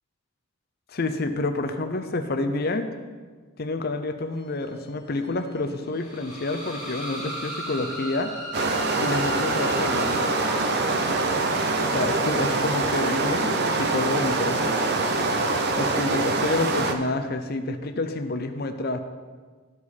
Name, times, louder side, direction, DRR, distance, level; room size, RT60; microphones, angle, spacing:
voice 1, 0.9-2.9 3.6-8.3 9.0-10.3 11.8-14.8 15.8-19.0, left 2 dB, 45° left, 8 dB, 0.6 m, -28 dB
sound 1, 4.4-14.4, equal, 5° right, 1.8 m, -38 dB
sound 2, 8.5-16.9, right 3 dB, 45° right, 0.6 m, -24 dB
13.0 x 4.8 x 4.2 m, 1.5 s
head